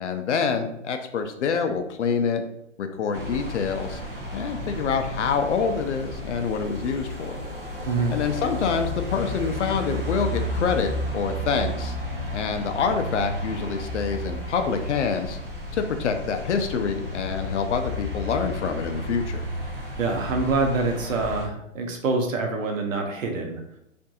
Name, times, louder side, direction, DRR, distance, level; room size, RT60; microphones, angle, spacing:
voice 1, 0.0-2.4 2.8-4.0 4.3-7.4 8.1-12.0 12.3-15.4 15.7-19.4, left 6 dB, 65° left, 6 dB, 0.5 m, -26 dB
sound 1, 3.1-21.5, left 1 dB, 45° right, 0.7 m, -32 dB
voice 2, 7.8-8.2 20.0-23.6, right 3 dB, 85° right, 3 dB, 0.8 m, -25 dB
2.7 x 2.5 x 2.3 m, 0.79 s
hypercardioid pair, 160°, 39 cm